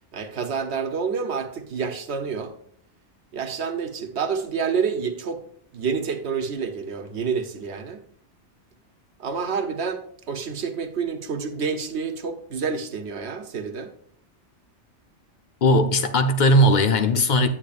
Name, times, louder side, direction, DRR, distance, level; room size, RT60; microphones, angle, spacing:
voice 1, 0.1-2.5 3.3-5.4 5.7-8.0 9.2-13.9, right 5 dB, 65° right, 1.1 m, -28 dB
voice 2, 15.6-17.5, equal, 45° left, 0.8 m, -18 dB
9.1 x 8.7 x 2.5 m
omnidirectional pair, 1.2 m